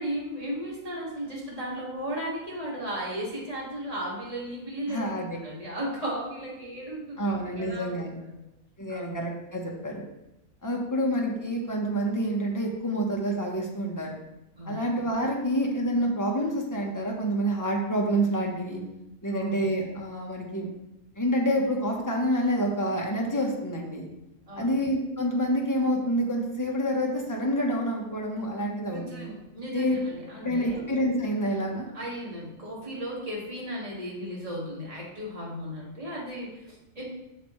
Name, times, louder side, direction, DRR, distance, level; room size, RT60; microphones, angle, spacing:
voice 1, 0.0-5.1 5.4-8.5 8.9-9.2 14.6-14.8 19.3-19.4 24.5-24.7 28.9-30.9 31.9-37.1, equal, 25° right, -5 dB, 2.2 m, -35 dB
voice 2, 4.9-5.4 7.2-8.2 8.8-10.0 10.6-14.1 14.7-18.8 19.2-20.7 21.2-24.1 24.6-29.3 29.7-30.0 30.4-31.9, equal, 15° left, -1 dB, 1.0 m, -27 dB
8.1 x 6.0 x 3.2 m, 0.91 s
omnidirectional pair, 1.6 m